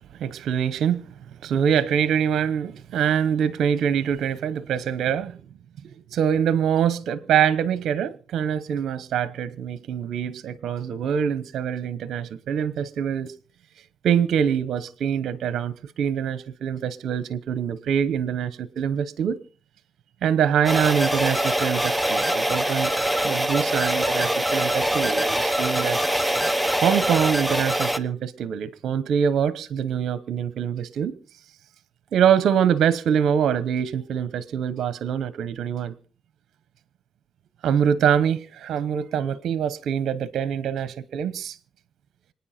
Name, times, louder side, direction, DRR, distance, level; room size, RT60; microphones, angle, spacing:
voice 1, 0.2-1.0 1.4-5.4 5.8-13.3 14.0-19.4 20.2-22.9 23.2-26.0 26.8-31.1 32.1-35.9 37.6-41.6, right 8 dB, 70° right, 0.9 m, -24 dB
sound 1, 20.7-28.0, right 1 dB, ahead, 0.9 m, -23 dB
25.5 x 9.5 x 4.3 m
cardioid pair, 90°, 0 cm